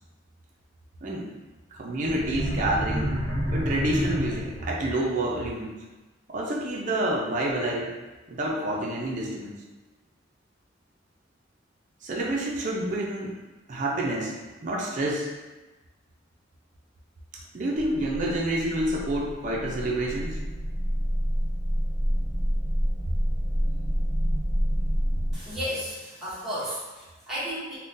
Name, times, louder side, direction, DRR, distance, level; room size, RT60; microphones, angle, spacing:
voice 1, 1.8-3.1 3.5-5.7 6.3-8.0 8.3-9.5 12.0-13.3 13.7-14.3 14.6-15.3 17.5-20.4, right 1 dB, 45° right, -3 dB, 0.5 m, -28 dB
sound 1, 2.1-4.9, equal, 50° left, 0.8 m, -29 dB
sound 2, 17.8-25.3, equal, 80° left, 0.9 m, -27 dB
voice 2, 25.3-27.7, equal, ahead, -11 dB, 0.8 m, -33 dB
3.6 x 2.1 x 2.6 m, 1.2 s
head